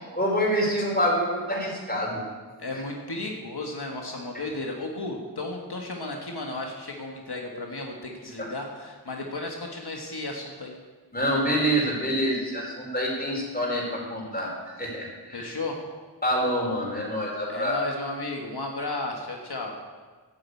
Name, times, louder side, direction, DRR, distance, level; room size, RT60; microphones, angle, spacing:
voice 1, 0.1-2.2 8.4-8.5 11.1-14.5 14.8-15.5 16.2-17.8, equal, 25° left, -2 dB, 4.5 m, -26 dB
voice 2, 2.6-10.7 15.3-15.8 17.5-19.8, left 2 dB, 90° left, 0 dB, 1.6 m, -34 dB
11.0 x 8.9 x 8.4 m, 1.4 s
wide cardioid pair, 45°, 38 cm